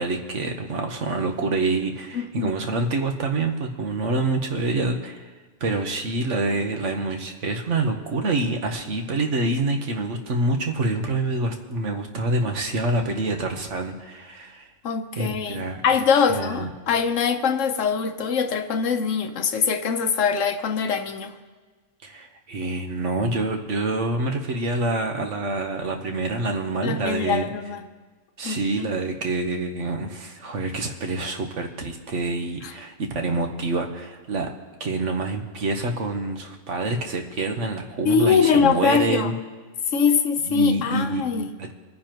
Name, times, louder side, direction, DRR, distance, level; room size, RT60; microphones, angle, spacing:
voice 1, 0.0-5.3 5.6-14.7 15.1-15.8 16.3-16.7 22.0-27.5 28.4-34.5 34.8-39.3 40.4-41.7, right 2 dB, 70° right, 4 dB, 1.5 m, -26 dB
voice 2, 2.1-2.5 14.8-21.3 26.8-27.8 28.4-28.9 32.6-32.7 38.0-39.3 39.9-41.5, left 6 dB, 75° left, 7 dB, 1.2 m, -23 dB
26.5 x 9.9 x 3.0 m, 1.4 s
omnidirectional pair, 1.3 m